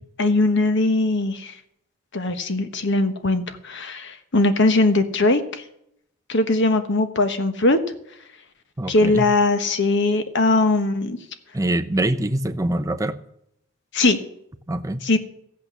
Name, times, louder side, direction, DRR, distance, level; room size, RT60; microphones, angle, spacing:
voice 1, 0.2-1.5 2.1-5.6 6.3-7.8 8.9-11.2 13.9-14.2 15.0-15.2, left 2 dB, 60° left, 9 dB, 1.3 m, -20 dB
voice 2, 8.8-9.3 11.5-13.2 14.7-15.0, right 1 dB, 15° right, 9 dB, 0.6 m, -24 dB
14.5 x 8.6 x 7.0 m, 0.74 s
head